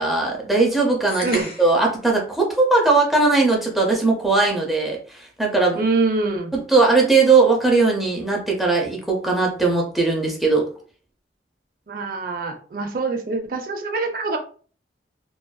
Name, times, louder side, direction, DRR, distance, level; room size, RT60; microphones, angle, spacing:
voice 1, 0.0-5.0 5.4-5.8 6.5-10.7, right 3 dB, ahead, -2 dB, 0.5 m, -19 dB
sound 1, 1.1-1.9, left 2 dB, 55° left, 1.0 m, -32 dB
voice 2, 1.2-1.5 5.7-6.5 11.9-14.4, right 3 dB, 50° right, 5 dB, 0.4 m, -24 dB
2.5 x 2.3 x 2.2 m, 0.41 s
head